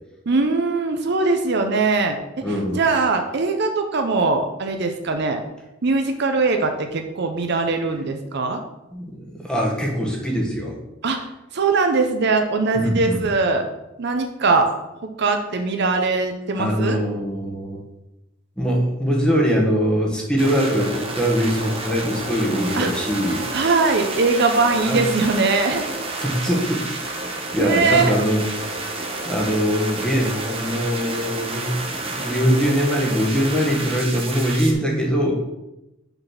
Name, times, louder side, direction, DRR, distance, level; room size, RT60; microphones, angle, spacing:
voice 1, 0.3-2.4 2.7-5.4 5.8-8.6 11.0-11.3 11.5-13.6 14.0-14.7 15.2-17.0 22.8-22.9 23.5-25.9 27.6-28.1, right 3 dB, 60° right, 5 dB, 0.7 m, -21 dB
voice 2, 2.4-2.8 8.9-10.7 12.7-13.3 16.6-17.8 18.6-23.4 24.8-25.0 26.2-28.4 29.0-35.4, equal, 5° left, -2 dB, 1.4 m, -22 dB
sound 1, 20.4-34.7, right 2 dB, 30° right, 1.0 m, -30 dB
5.5 x 4.1 x 5.9 m, 0.95 s
head